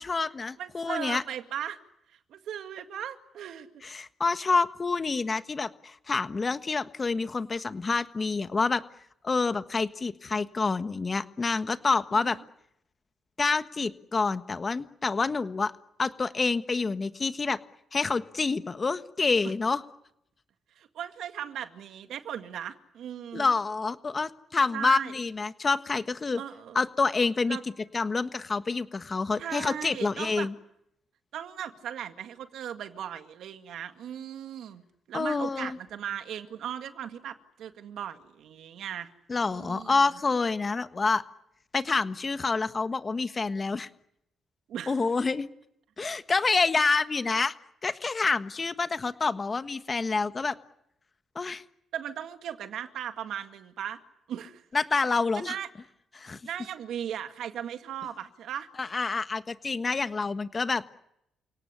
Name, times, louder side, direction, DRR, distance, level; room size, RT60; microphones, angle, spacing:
voice 1, 0.0-1.2 3.8-8.8 9.2-12.4 13.4-15.7 16.0-17.6 17.9-19.8 23.3-26.4 26.7-27.6 27.9-30.5 35.1-35.8 39.3-41.2 41.7-43.9 44.9-45.5 46.0-47.5 47.8-50.5 51.3-51.6 54.7-55.6 56.2-56.4 58.8-60.8, left 4 dB, 30° left, 11 dB, 1.4 m, -27 dB
voice 2, 0.6-1.8 2.3-3.7 12.1-12.3 19.4-19.5 20.8-23.5 24.7-25.1 26.4-26.8 27.5-27.6 29.4-30.5 31.3-39.1 39.4-40.0 44.7-45.0 51.9-54.0 54.3-54.6 55.3-55.7 56.3-58.7, right 9 dB, 75° right, 9 dB, 2.0 m, -37 dB
29.0 x 18.0 x 9.8 m, 0.78 s
cardioid pair, 90°, 0 cm